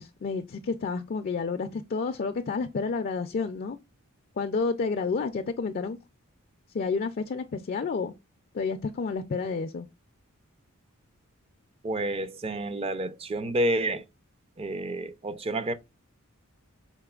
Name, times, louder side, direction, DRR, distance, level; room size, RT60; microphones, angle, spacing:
voice 1, 0.0-3.8 4.4-6.0 6.7-8.1 8.5-9.9, left 4 dB, 45° left, 0.3 m, -30 dB
voice 2, 11.8-14.0 14.6-15.7, right 1 dB, 25° right, 0.4 m, -29 dB
5.7 x 3.7 x 2.3 m
head